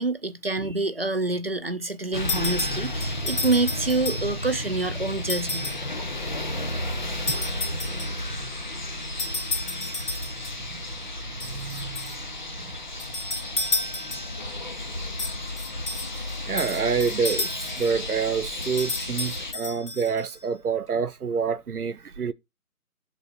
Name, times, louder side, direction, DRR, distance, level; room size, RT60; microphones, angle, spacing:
voice 1, 0.0-5.7, right 3 dB, 40° right, 0.5 m, -27 dB
sound 1, 2.1-19.5, left 1 dB, 30° left, 0.8 m, -33 dB
sound 2, 2.3-4.5 5.3-5.9 7.3-8.3 9.2-10.6 11.4-12.2 13.0-14.4 15.2-18.0 18.6-20.4, left 2 dB, 90° left, 2.2 m, -32 dB
voice 2, 10.6-12.8 16.2-22.3, right 6 dB, 75° right, 0.8 m, -28 dB
9.4 x 3.9 x 4.1 m
figure-of-eight pair, 160°, 45 cm